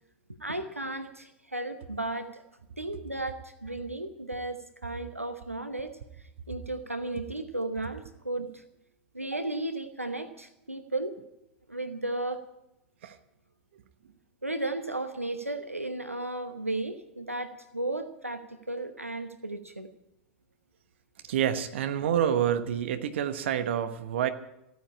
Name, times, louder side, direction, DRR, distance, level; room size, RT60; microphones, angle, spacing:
voice 1, 0.4-2.4 2.8-6.0 6.5-8.6 9.1-11.2 11.7-12.4 14.4-19.9, right 2 dB, 90° right, 10 dB, 1.0 m, -34 dB
voice 2, 21.3-24.3, right 9 dB, 60° right, 10 dB, 1.1 m, -27 dB
15.0 x 9.4 x 8.5 m, 0.84 s
figure-of-eight pair, 90°, 7 cm